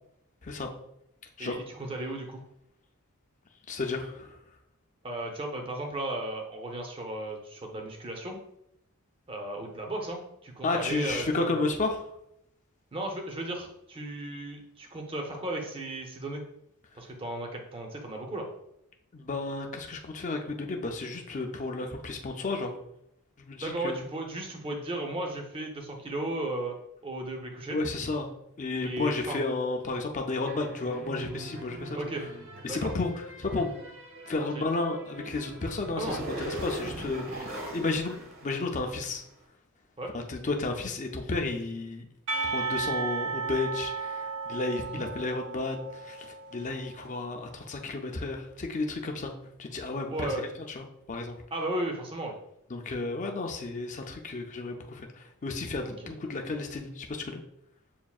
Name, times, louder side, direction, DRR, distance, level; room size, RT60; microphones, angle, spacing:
voice 1, 1.4-2.4 5.0-8.4 9.3-11.7 12.9-16.4 17.0-18.5 23.6-26.8 27.0-27.8 28.8-29.4 31.9-32.2 32.7-32.8 34.5-34.6 36.0-36.2 40.0-40.1 44.9-45.0 50.1-50.4 51.5-52.3 56.0-56.1, right 1 dB, 25° right, 2 dB, 0.6 m, -35 dB
voice 2, 3.7-4.4 10.6-12.0 19.1-22.7 23.4-24.0 27.7-28.3 28.6-32.0 32.6-33.8 34.3-38.2 38.4-39.2 40.1-42.1 42.5-49.3 49.6-50.3 50.7-51.4 52.7-57.4, left 3 dB, 35° left, 3 dB, 0.5 m, -32 dB
sound 1, 30.5-39.2, right 1 dB, 65° right, 1.1 m, -41 dB
Percussion, 42.3-47.1, right 4 dB, 85° right, 0.8 m, -34 dB
7.1 x 2.5 x 2.3 m, 0.79 s
head